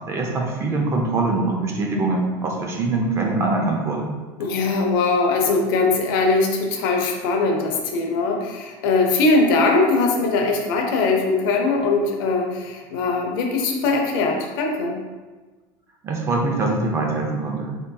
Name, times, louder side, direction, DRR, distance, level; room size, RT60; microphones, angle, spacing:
voice 1, 0.1-4.1 16.0-17.7, right 3 dB, 25° right, 0 dB, 0.4 m, -23 dB
voice 2, 4.4-15.0, left 3 dB, 85° left, 1 dB, 0.6 m, -21 dB
3.7 x 2.6 x 2.2 m, 1.3 s
cardioid pair, 155°, 11 cm